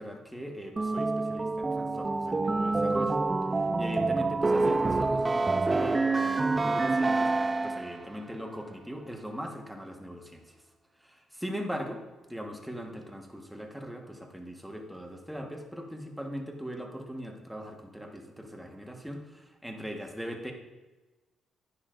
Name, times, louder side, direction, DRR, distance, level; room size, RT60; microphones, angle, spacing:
voice 1, 0.0-3.2 3.5-10.6 11.0-12.0 12.3-20.5, equal, 5° right, 2 dB, 1.4 m, -40 dB
sound 1, 0.8-8.0, right 3 dB, 25° right, 0.4 m, -27 dB
11.5 x 9.7 x 2.6 m, 1.2 s
cardioid pair, 90°, 0 cm